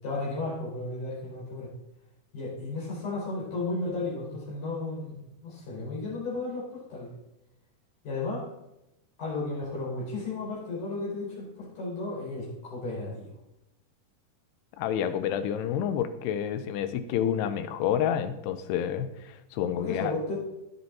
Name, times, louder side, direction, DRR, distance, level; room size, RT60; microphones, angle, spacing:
voice 1, 0.0-1.7 2.3-7.1 8.0-8.5 9.2-13.3 19.8-20.4, left 2 dB, 50° left, -5 dB, 6.3 m, -34 dB
voice 2, 14.8-20.1, left 9 dB, 85° left, 11 dB, 2.9 m, -29 dB
18.0 x 7.9 x 4.2 m, 0.90 s
omnidirectional pair, 4.7 m